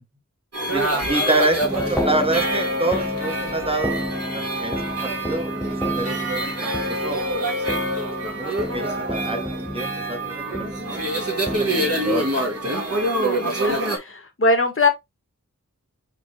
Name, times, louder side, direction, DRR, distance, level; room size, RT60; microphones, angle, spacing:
sound 1, 0.5-14.0, right 1 dB, 45° right, 1.8 m, -26 dB
voice 1, 0.7-4.0 4.3-5.5 6.0-7.2 8.0-11.1 11.5-12.3 12.9-13.2, right 2 dB, 15° right, 1.4 m, -27 dB
sound 2, 1.6-13.2, equal, ahead, 1.0 m, -32 dB
voice 2, 13.5-14.9, left 2 dB, 40° left, 1.4 m, -21 dB
5.0 x 2.6 x 3.2 m
wide cardioid pair, 40°, 32 cm